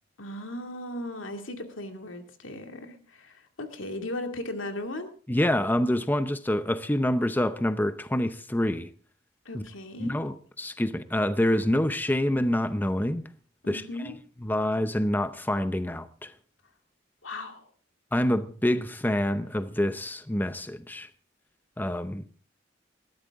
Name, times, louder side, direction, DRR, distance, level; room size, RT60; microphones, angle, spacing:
voice 1, 0.2-5.1 9.4-10.1 13.6-14.2 17.2-17.7, left 1 dB, 90° left, 2.4 m, -37 dB
voice 2, 5.3-8.9 9.5-9.6 10.0-13.3 13.7-13.8 14.4-16.3 18.1-21.1 21.8-22.2, left 1 dB, 10° left, 0.6 m, -26 dB
20.5 x 14.5 x 3.6 m
head